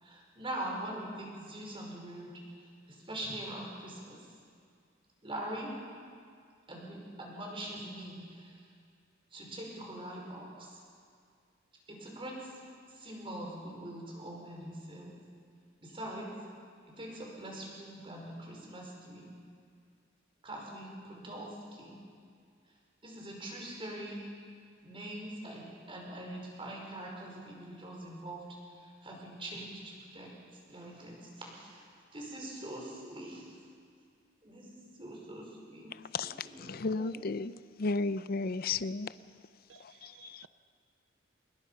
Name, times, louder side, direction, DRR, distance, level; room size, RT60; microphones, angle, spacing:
voice 1, 0.0-2.3 2.9-4.2 5.2-5.7 6.7-8.6 9.3-10.8 11.9-12.5 12.9-15.1 15.8-16.3 17.0-19.3 20.4-22.0 23.0-24.3 24.8-28.5 28.7-30.3 30.7-33.6 34.4-35.9 36.2-36.6 37.0-37.2, right 1 dB, 30° right, -1 dB, 5.3 m, -43 dB
voice 2, 36.1-37.5 37.8-39.1 40.0-40.5, left 3 dB, 50° left, 15 dB, 0.6 m, -34 dB
voice 3, 39.7-40.5, right 9 dB, 75° right, 12 dB, 0.5 m, -57 dB
26.5 x 21.0 x 5.7 m, 2.2 s
head